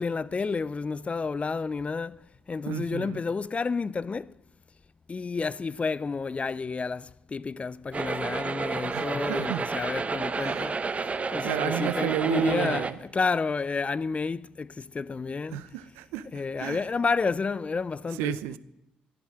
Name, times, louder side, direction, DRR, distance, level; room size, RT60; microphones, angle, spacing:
voice 1, 0.0-2.2 2.5-4.3 5.1-10.8 11.3-12.9 13.1-15.7 16.3-18.4, left 4 dB, 35° left, 0.6 m, -30 dB
voice 2, 2.7-3.2 8.9-9.6 10.4-10.7 11.4-13.0 15.5-16.3 16.6-16.8 18.2-18.6, right 13 dB, 85° right, 0.7 m, -31 dB
sound 1, 7.9-12.9, right 4 dB, 35° right, 1.1 m, -31 dB
15.5 x 10.5 x 6.4 m
hypercardioid pair, 55°, 4 cm